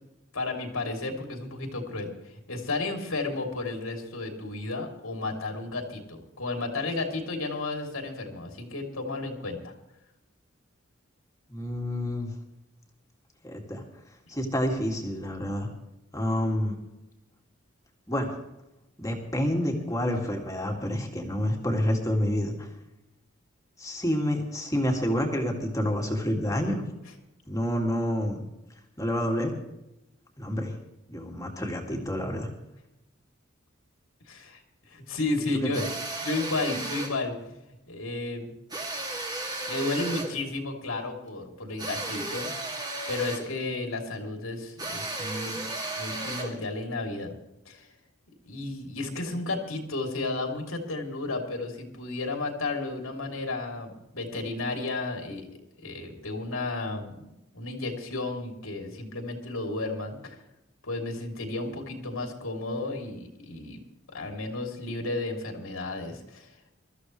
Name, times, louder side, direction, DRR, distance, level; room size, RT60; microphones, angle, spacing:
voice 1, 0.3-2.1 2.5-9.7 34.3-34.6 34.9-35.9 36.2-38.5 39.7-42.5 43.1-45.6 46.0-47.3 47.6-47.9 48.4-55.5 55.8-57.3 57.5-60.3 60.8-63.8 64.1-66.5, left 2 dB, 85° left, 2 dB, 3.0 m, -33 dB
voice 2, 11.5-12.3 13.4-13.8 14.3-15.7 16.1-16.8 18.1-18.3 19.0-22.7 23.8-26.9 27.5-28.4 29.0-29.5 30.4-30.8 31.1-32.5 35.6-35.7, equal, 15° left, 1 dB, 2.2 m, -28 dB
sound 1, 35.7-37.2 38.7-40.4 41.8-43.5 44.8-46.6, right 2 dB, 20° right, 2.3 m, -34 dB
22.5 x 14.0 x 3.2 m, 0.92 s
head